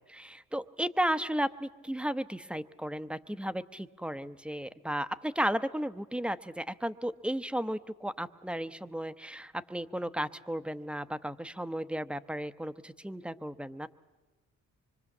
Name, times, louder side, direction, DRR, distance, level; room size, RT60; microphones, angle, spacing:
voice 1, 0.1-13.9, equal, 5° right, 12 dB, 0.8 m, -34 dB
25.0 x 23.5 x 7.2 m, 1.2 s
cardioid pair, 90°, 30 cm